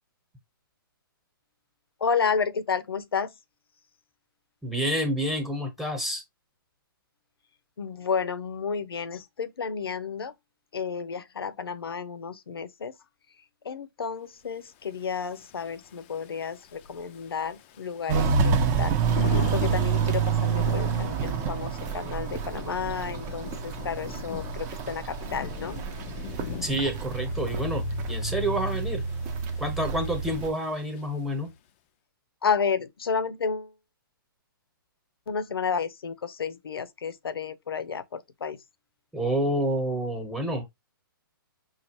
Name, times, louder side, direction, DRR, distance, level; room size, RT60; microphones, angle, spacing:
voice 1, 2.0-3.3 7.8-10.3 10.7-12.9 13.6-25.8 32.4-33.7 35.3-38.6, left 6 dB, 85° left, 0.7 m, -31 dB
voice 2, 4.6-6.2 26.6-29.0 29.6-31.5 39.1-40.6, right 1 dB, ahead, 1.1 m, -28 dB
Thunder / Rain, 14.8-31.4, left 11 dB, 30° left, 0.5 m, -41 dB
Walk footsteps, 18.1-30.5, right 6 dB, 25° right, 0.7 m, -28 dB
5.4 x 2.5 x 3.0 m
hypercardioid pair, 140°, 12 cm